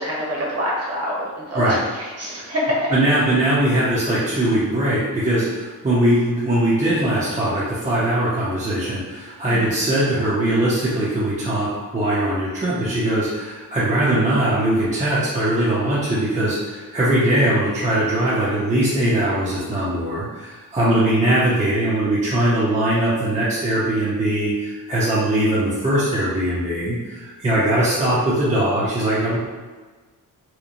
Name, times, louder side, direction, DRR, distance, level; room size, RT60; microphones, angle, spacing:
voice 1, 0.0-3.0 9.4-9.7, equal, 45° right, -6 dB, 0.9 m, -25 dB
voice 2, 2.9-29.4, right 1 dB, 20° right, -8 dB, 0.5 m, -21 dB
2.9 x 2.1 x 2.4 m, 1.3 s
wide cardioid pair, 110°, 35 cm